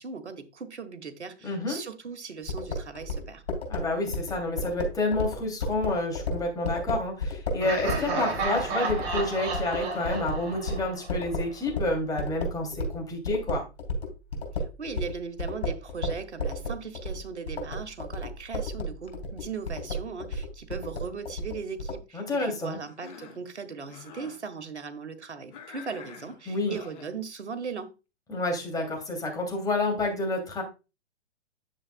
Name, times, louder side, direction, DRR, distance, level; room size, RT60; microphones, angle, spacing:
voice 1, 0.0-3.4 14.6-27.9, right 5 dB, 85° right, 1.4 m, -38 dB
voice 2, 1.4-1.8 3.7-13.6 22.1-22.8 26.5-26.8 28.3-30.6, left 2 dB, 10° left, 2.8 m, -29 dB
sound 1, 2.5-13.0 13.2-22.0, left 1 dB, 70° left, 3.5 m, -32 dB
Laughter, 7.6-11.5, right 4 dB, 30° right, 3.4 m, -32 dB
Cough, 22.9-23.5 23.8-24.4 25.5-27.1, left 7 dB, 45° left, 2.7 m, -47 dB
9.9 x 7.3 x 2.3 m
hypercardioid pair, 125°, 34 cm